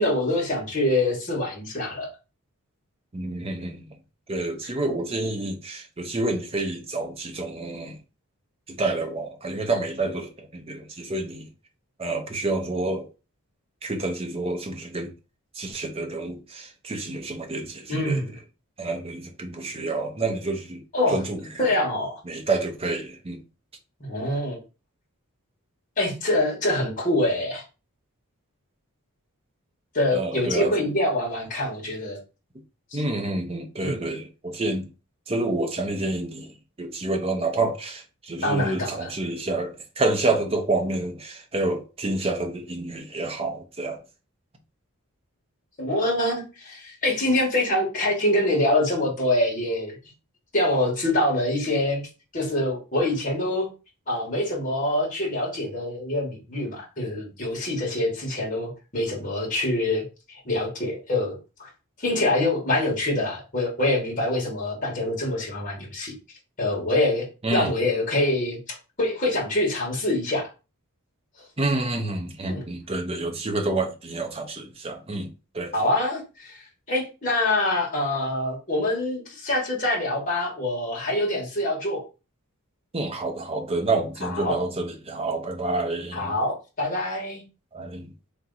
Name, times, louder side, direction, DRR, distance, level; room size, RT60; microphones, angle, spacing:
voice 1, 0.0-2.1 17.9-18.3 20.9-21.2 21.6-22.2 24.0-24.6 26.0-27.6 29.9-32.2 33.8-34.0 38.4-39.1 45.8-50.0 50.5-52.0 52.3-53.7 54.1-61.7 62.0-66.1 66.6-70.5 72.4-72.6 75.7-76.6 76.9-82.0 84.2-84.6 86.1-87.4, left 1 dB, 35° left, 1.6 m, -25 dB
voice 2, 3.1-3.9 4.3-8.0 8.7-11.5 12.0-13.1 13.8-15.1 15.5-18.2 18.8-21.6 22.2-23.4 30.1-30.9 32.9-34.9 35.3-44.0 67.4-67.7 71.6-75.7 82.9-86.3 87.7-88.1, right 2 dB, 25° right, 0.7 m, -28 dB
3.4 x 2.9 x 4.0 m
head